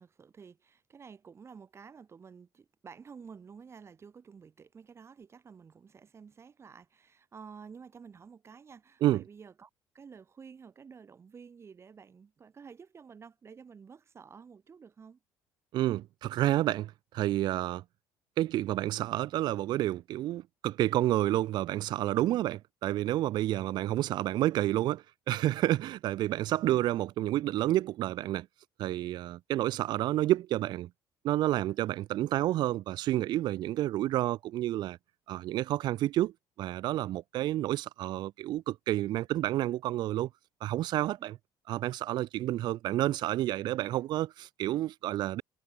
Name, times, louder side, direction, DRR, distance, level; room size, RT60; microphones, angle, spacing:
voice 1, 0.0-15.2 41.2-41.3, right 6 dB, 30° right, 3.3 m, -51 dB
voice 2, 15.7-17.8 18.4-28.5 28.8-30.9 31.2-35.0 35.3-36.3 36.6-40.3 40.6-41.4 41.7-45.4, right 14 dB, 60° right, 0.4 m, -29 dB
cardioid pair, 120°, 8 cm